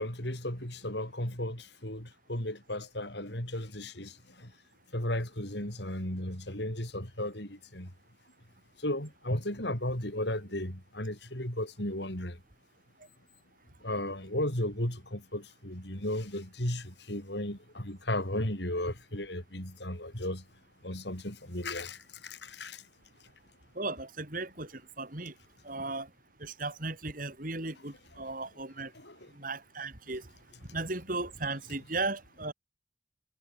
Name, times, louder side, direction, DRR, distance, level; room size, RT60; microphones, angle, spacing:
voice 1, 0.0-4.1 4.9-7.9 8.8-12.4 13.8-20.4 20.8-22.8 28.9-29.2, left 1 dB, 65° left, 6.3 m, -35 dB
voice 2, 23.7-25.3 25.6-26.1 26.4-28.9 29.3-30.2 30.7-32.5, right 3 dB, 45° right, 3.2 m, -36 dB
head